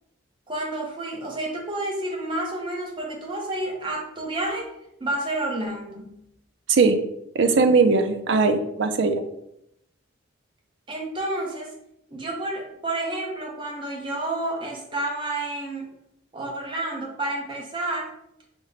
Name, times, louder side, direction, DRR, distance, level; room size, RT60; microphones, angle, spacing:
voice 1, 0.5-4.7 5.0-6.2 10.9-11.7 12.1-15.9 16.3-18.1, right 2 dB, 25° right, -1 dB, 0.8 m, -30 dB
voice 2, 7.4-9.2, right 4 dB, 60° right, 8 dB, 0.4 m, -19 dB
4.6 x 2.1 x 3.9 m, 0.80 s
head